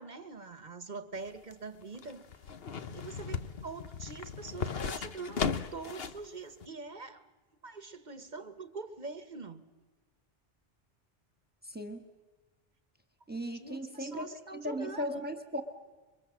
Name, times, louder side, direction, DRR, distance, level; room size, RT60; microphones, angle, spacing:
voice 1, 0.0-2.2 2.9-7.3 7.6-9.7 13.5-15.1, right 4 dB, 45° right, 1.5 m, -44 dB
sound 1, 1.1-6.2 6.6-6.7, left 6 dB, 70° left, 1.3 m, -37 dB
voice 2, 11.6-12.0 13.3-15.6, equal, 10° right, 1.9 m, -37 dB
28.5 x 24.0 x 7.5 m
omnidirectional pair, 1.0 m